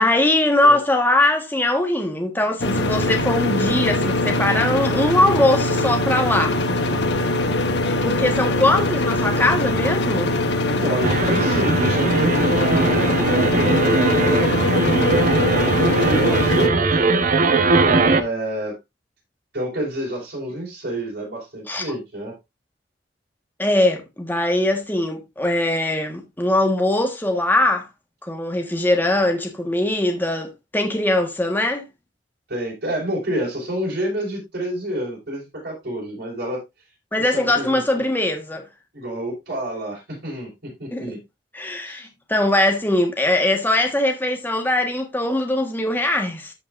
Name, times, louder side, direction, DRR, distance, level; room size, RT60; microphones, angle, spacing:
voice 1, 0.0-6.6 8.0-10.3 21.7-21.9 23.6-27.9 28.2-31.8 37.1-38.6 40.9-41.1 41.5-46.5, left 1 dB, 10° left, 1.4 m, -21 dB
sound 1, 2.6-16.7, left 2 dB, 70° left, 1.3 m, -22 dB
voice 2, 8.0-8.3 10.7-17.2 17.8-18.8 19.5-22.4 32.5-36.6 37.2-37.8 38.9-41.2 41.8-42.1, right 1 dB, 65° right, 4.9 m, -29 dB
sound 2, 11.0-18.2, right 3 dB, 50° right, 0.9 m, -20 dB
13.5 x 5.8 x 2.5 m
head